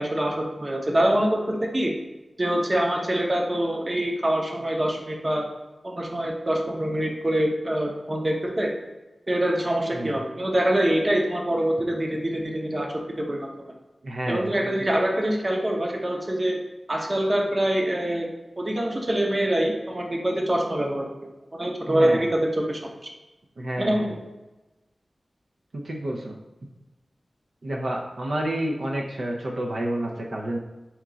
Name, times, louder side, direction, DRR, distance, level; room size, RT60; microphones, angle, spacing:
voice 1, 0.0-1.9 2.4-5.5 5.8-8.7 9.3-12.9 13.2-13.5 14.3-16.6 16.9-18.3 18.6-21.1 21.5-22.8 23.8-24.2, right 1 dB, 35° right, 0 dB, 0.7 m, -24 dB
voice 2, 14.0-14.9 21.9-22.3 23.6-24.1 25.8-26.4 27.6-30.6, right 1 dB, 85° right, -1 dB, 0.6 m, -29 dB
4.3 x 2.4 x 3.8 m, 1.1 s
wide cardioid pair, 90°, 0 cm